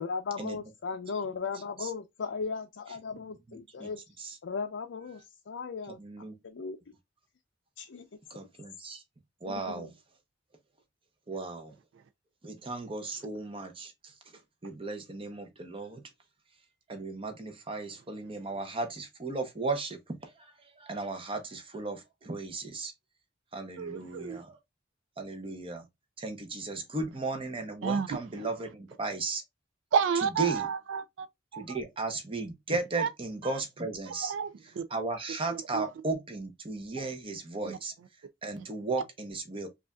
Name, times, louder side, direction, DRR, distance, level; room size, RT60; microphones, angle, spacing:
voice 1, 0.0-4.0 4.4-6.0 6.4-6.8 7.8-8.1 9.5-9.9, left 5 dB, 90° left, 0.5 m, -37 dB
voice 2, 3.5-3.9 4.2-4.4 6.0-6.4 8.3-9.0 9.4-9.9 11.3-11.7 12.4-14.1 14.6-16.0 16.9-22.9 23.5-24.6 25.2-25.9 26.2-29.4 30.2-30.7 31.5-34.3 34.9-37.9 38.4-39.7, right 3 dB, 30° right, 0.8 m, -35 dB
voice 3, 23.8-24.4 27.8-28.2 29.9-31.3 31.5-31.8 33.0-33.1 34.1-34.8 35.5-35.8 37.7-37.8 38.9-39.0, right 7 dB, 85° right, 0.3 m, -31 dB
4.9 x 2.5 x 2.2 m
head